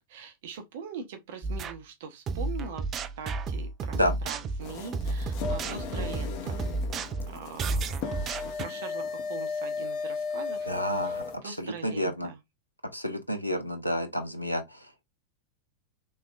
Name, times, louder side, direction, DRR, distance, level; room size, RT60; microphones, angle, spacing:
voice 1, 0.0-6.6 7.3-8.2 8.6-10.7 11.0-11.2 11.4-12.4, right 6 dB, 55° right, 0.8 m, -42 dB
sound 1, 1.4-1.8 2.3-8.7, right 3 dB, 30° right, 0.4 m, -32 dB
sound 2, 4.6-11.4, left 5 dB, 40° left, 0.7 m, -35 dB
voice 2, 10.7-12.3 12.9-14.6, equal, 90° left, 0.6 m, -30 dB
3.6 x 3.1 x 2.4 m
figure-of-eight pair, 90°, 0 cm